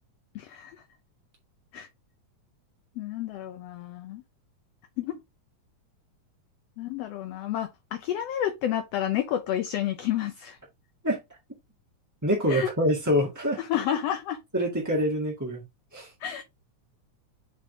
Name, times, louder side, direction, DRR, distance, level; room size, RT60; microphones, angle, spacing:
voice 1, 0.3-0.8 1.7-1.9 3.0-4.2 5.0-5.2 6.8-10.6 12.5-12.7 13.6-14.4 16.2-16.4, left 11 dB, 70° left, 1.6 m, -30 dB
voice 2, 12.2-13.6 14.5-15.6 15.9-16.1, equal, 10° right, 1.3 m, -25 dB
7.6 x 3.8 x 3.7 m
omnidirectional pair, 3.4 m